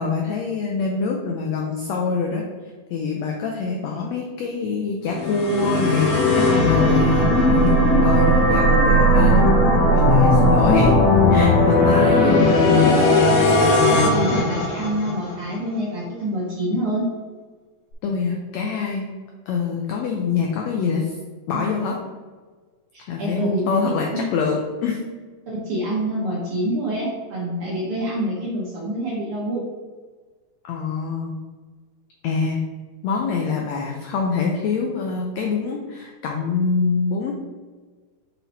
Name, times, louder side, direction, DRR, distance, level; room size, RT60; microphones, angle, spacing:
voice 1, 0.0-2.4 2.9-9.5 9.9-11.0 11.3-13.0 18.0-19.1 19.5-21.2 21.5-22.0 23.1-25.0 30.6-31.4 32.2-32.6 33.0-37.3, left 5 dB, 90° left, 1 dB, 1.5 m, -25 dB
sound 1, 5.1-15.3, left 1 dB, 75° left, 1.6 m, -17 dB
voice 2, 6.9-7.5 12.0-12.6 14.0-17.1 21.5-21.6 22.9-24.2 25.5-29.6, right 1 dB, 70° right, -4 dB, 1.3 m, -27 dB
5.7 x 4.2 x 4.1 m, 1.4 s
omnidirectional pair, 3.8 m